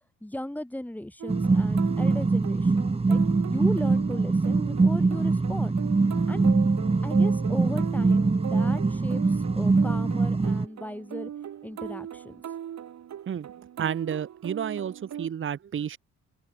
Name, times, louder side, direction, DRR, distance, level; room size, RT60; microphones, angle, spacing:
voice 1, 0.2-5.8 6.3-6.5 7.0-11.3 11.6-12.4, left 1 dB, 5° left, 3.2 m, -37 dB
sound 1, 1.2-15.3, right 10 dB, 65° right, 4.2 m, -39 dB
sound 2, 1.3-10.6, right 3 dB, 20° right, 1.8 m, -23 dB
voice 2, 13.8-16.0, right 8 dB, 40° right, 1.1 m, -31 dB
open air
cardioid pair, 90°, 30 cm